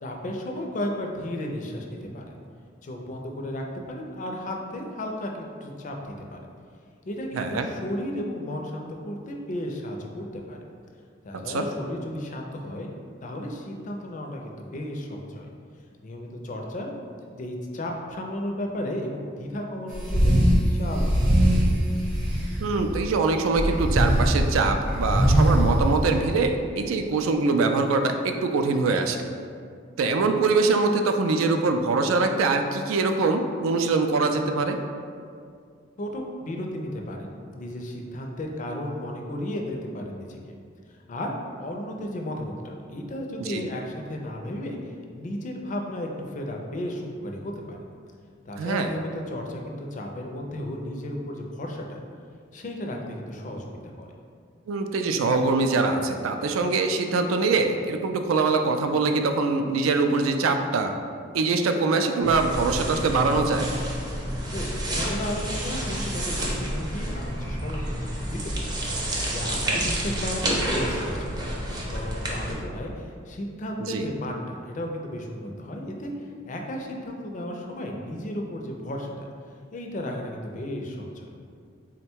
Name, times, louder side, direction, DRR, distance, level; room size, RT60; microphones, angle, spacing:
voice 1, 0.0-2.3 2.8-6.4 7.1-10.6 11.2-15.5 16.0-16.9 17.2-21.4 36.0-40.6 40.9-47.8 48.5-52.0 52.5-53.7 54.0-54.1 64.5-68.7 69.0-79.3 79.7-81.3, left 1 dB, 40° left, 1 dB, 0.4 m, -34 dB
voice 2, 7.3-7.7 11.5-11.6 22.6-29.3 30.0-34.8 43.4-43.7 48.6-48.9 54.7-60.9 61.3-63.7 69.6-69.9 73.8-74.1, right 3 dB, 90° right, 6 dB, 0.3 m, -23 dB
sound 1, 19.9-20.6 20.9-23.1 23.5-26.4, equal, 40° right, 0.8 m, -22 dB
sound 2, 62.2-72.5, right 1 dB, 20° right, 0.5 m, -29 dB
3.7 x 2.2 x 4.4 m, 2.2 s
head